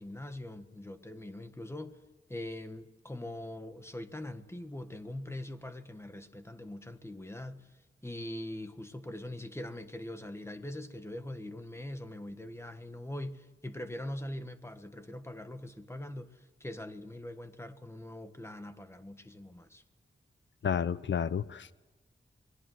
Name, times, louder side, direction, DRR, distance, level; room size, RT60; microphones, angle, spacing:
voice 1, 0.0-2.0 2.3-7.7 8.0-19.8, left 1 dB, 15° left, 1.5 m, -42 dB
voice 2, 20.6-21.7, left 7 dB, 65° left, 0.7 m, -31 dB
27.5 x 21.0 x 7.8 m
wide cardioid pair, 115°, 20 cm